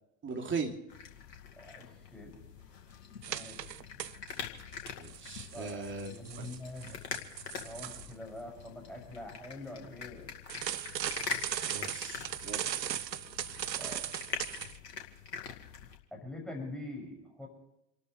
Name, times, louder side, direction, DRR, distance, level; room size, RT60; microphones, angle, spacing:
voice 1, 0.2-0.7 5.0-6.5 11.6-12.8, right 4 dB, 25° right, 3 dB, 3.1 m, -39 dB
sound 1, 0.9-16.0, left 6 dB, 80° left, 2.3 m, -44 dB
voice 2, 1.5-2.3 3.3-3.6 5.5-7.0 7.6-10.3 13.8-14.1 16.1-17.5, left 1 dB, ahead, 0 dB, 6.5 m, -44 dB
sound 2, 3.2-4.4 4.7-8.1 10.5-14.8, right 10 dB, 90° right, 0.6 m, -38 dB
29.5 x 13.0 x 3.2 m, 0.86 s
figure-of-eight pair, 80°, 49 cm